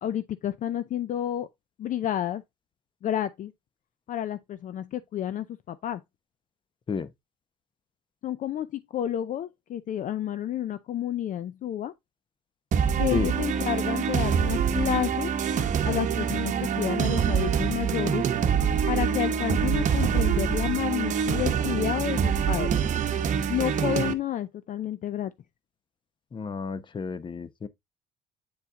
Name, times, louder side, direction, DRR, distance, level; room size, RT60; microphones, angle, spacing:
voice 1, 0.0-1.5 1.8-2.4 3.0-3.5 4.1-6.0 8.2-11.9 13.0-15.3 15.8-18.2 18.9-22.7 23.5-25.3, left 11 dB, 50° left, 0.5 m, -30 dB
sound 1, 12.7-24.1, right 7 dB, 45° right, 1.0 m, -25 dB
voice 2, 26.3-27.7, left 5 dB, 30° left, 0.8 m, -31 dB
8.7 x 4.1 x 3.6 m
cardioid pair, 110°, 17 cm